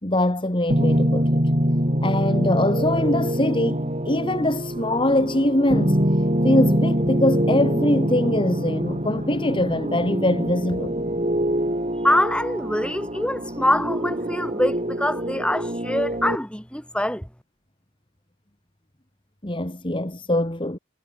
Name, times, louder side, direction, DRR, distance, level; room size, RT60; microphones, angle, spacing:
voice 1, 0.0-1.4 2.0-6.1 6.4-10.9 19.4-20.8, left 1 dB, 25° left, 2.0 m, -23 dB
sound 1, 0.7-16.4, equal, 30° right, 6.7 m, -24 dB
voice 2, 12.0-17.3, left 1 dB, 5° left, 7.1 m, -24 dB
head